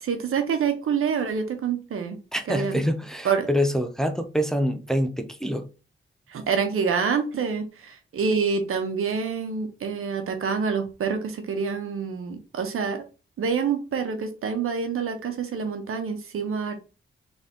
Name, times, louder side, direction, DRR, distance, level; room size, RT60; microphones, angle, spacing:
voice 1, 0.0-2.2 2.5-2.8 3.2-3.5 6.3-13.0 13.4-16.8, right 6 dB, 85° right, 1.0 m, -27 dB
voice 2, 2.3-5.7, equal, ahead, 0.6 m, -25 dB
3.9 x 3.5 x 3.6 m
wide cardioid pair, 100°, 21 cm